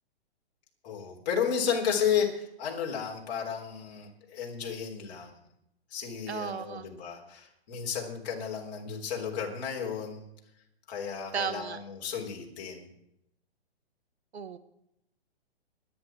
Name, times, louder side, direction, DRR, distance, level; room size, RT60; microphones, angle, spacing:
voice 1, 0.8-5.3 5.9-10.2 10.9-12.9, left 7 dB, 40° left, 0 dB, 3.7 m, -33 dB
voice 2, 6.3-6.9 11.3-11.8 14.3-14.6, right 7 dB, 85° right, 12 dB, 1.4 m, -34 dB
23.5 x 9.5 x 4.7 m, 0.81 s
hypercardioid pair, 145°, 32 cm